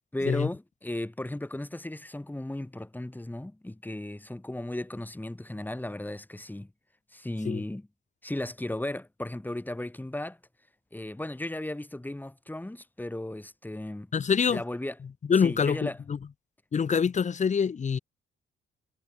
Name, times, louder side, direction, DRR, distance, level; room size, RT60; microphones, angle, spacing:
voice 1, 0.1-6.7 7.1-7.9 8.2-10.4 10.9-14.1 14.5-14.9 15.4-16.0, left 1 dB, 10° left, 5.7 m, -35 dB
voice 2, 14.1-14.6 15.2-16.2 16.7-18.0, left 6 dB, 35° left, 1.1 m, -25 dB
cardioid pair, 90°, 20 cm